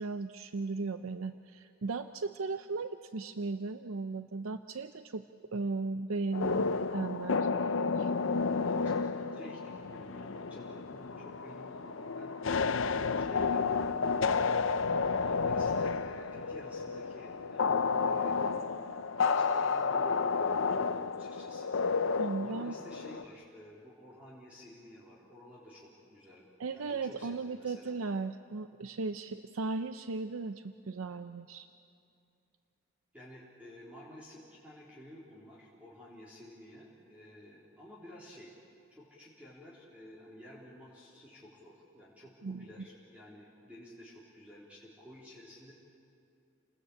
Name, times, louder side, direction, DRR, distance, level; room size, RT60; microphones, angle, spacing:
voice 1, 0.0-5.2 5.5-7.5 8.0-8.1 22.2-22.7 26.6-31.7 42.4-42.9, right 3 dB, 85° right, 10 dB, 0.6 m, -36 dB
sound 1, 6.3-23.2, left 5 dB, 70° left, 0.6 m, -31 dB
voice 2, 8.6-14.1 14.4-14.7 15.2-21.7 22.0-28.0 33.1-38.5 38.9-45.7, left 1 dB, 5° right, -6 dB, 3.7 m, -52 dB
29.0 x 20.0 x 8.6 m, 2.6 s
head